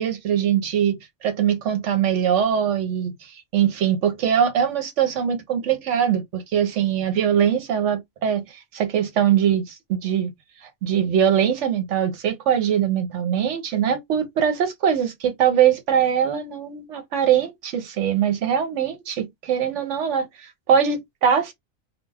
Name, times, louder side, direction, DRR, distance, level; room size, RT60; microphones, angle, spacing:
voice 1, 0.0-10.3 10.6-21.5, right 8 dB, 80° right, 1.1 m, -22 dB
2.4 x 2.2 x 3.3 m
omnidirectional pair, 1.2 m